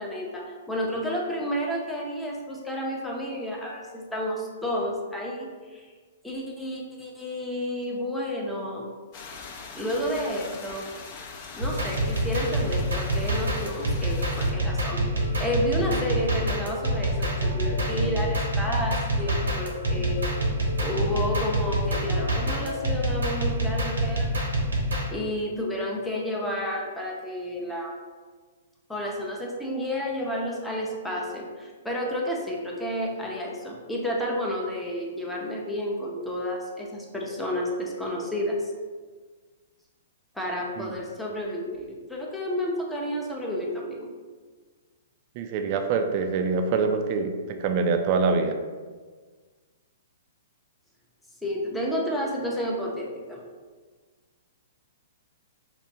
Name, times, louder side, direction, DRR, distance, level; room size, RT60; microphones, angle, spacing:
voice 1, 0.0-5.9 6.2-8.9 9.7-10.9 11.6-20.2 20.8-24.3 25.1-27.9 28.9-38.7 40.3-44.1 51.4-53.4, equal, 5° left, -3 dB, 0.7 m, -31 dB
sound 1, 9.1-14.5, left 5 dB, 40° left, 0.7 m, -42 dB
sound 2, 11.6-25.1, right 1 dB, 90° right, 0.9 m, -26 dB
sound 3, 14.9-22.9, left 1 dB, 80° left, 0.4 m, -40 dB
voice 2, 45.4-48.6, right 4 dB, 45° right, 6 dB, 0.4 m, -25 dB
5.6 x 2.2 x 2.7 m, 1.5 s
hypercardioid pair, 130°, 0 cm